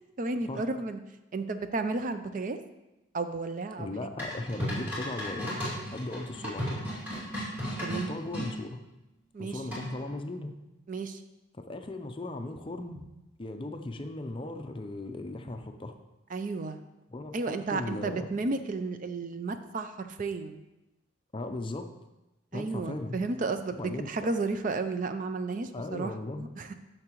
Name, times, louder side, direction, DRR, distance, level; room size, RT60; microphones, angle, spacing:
voice 1, 0.2-1.0 1.3-2.6 3.1-3.9 7.8-8.1 9.3-9.6 10.9-11.2 16.3-16.8 17.3-20.6 22.5-26.7, right 3 dB, 40° right, 9 dB, 0.4 m, -33 dB
voice 2, 3.8-5.6 5.9-6.8 7.8-8.8 9.4-10.5 11.5-13.1 13.4-16.0 17.1-18.3 21.3-21.9 22.5-23.2 23.8-24.3 25.7-26.5, left 2 dB, 25° left, 7 dB, 0.5 m, -37 dB
sound 1, 4.2-8.5 9.7-10.1, equal, 10° right, 2.3 m, -35 dB
9.8 x 6.5 x 3.0 m, 0.98 s
head